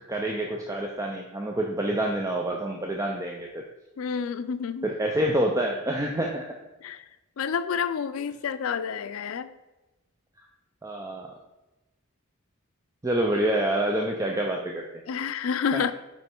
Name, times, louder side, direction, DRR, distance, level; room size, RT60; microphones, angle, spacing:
voice 1, 0.1-3.6 4.8-6.4 10.8-11.3 13.0-15.0 15.7-15.8, right 1 dB, 15° right, 1 dB, 0.4 m, -27 dB
voice 2, 4.0-4.9 6.8-7.0 7.4-9.5 15.1-15.9, left 6 dB, 80° left, 12 dB, 0.4 m, -29 dB
5.3 x 4.5 x 4.4 m, 1.0 s
head